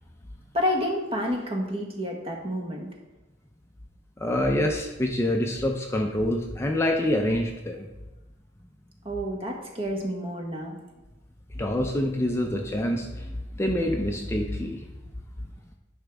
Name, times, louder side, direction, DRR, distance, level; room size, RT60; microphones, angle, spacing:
voice 1, 0.5-2.9 9.0-10.8, left 1 dB, 30° right, 1 dB, 1.2 m, -29 dB
voice 2, 4.2-7.9 11.6-14.8, left 1 dB, 15° left, 2 dB, 0.5 m, -26 dB
10.0 x 5.1 x 3.4 m, 1.1 s
head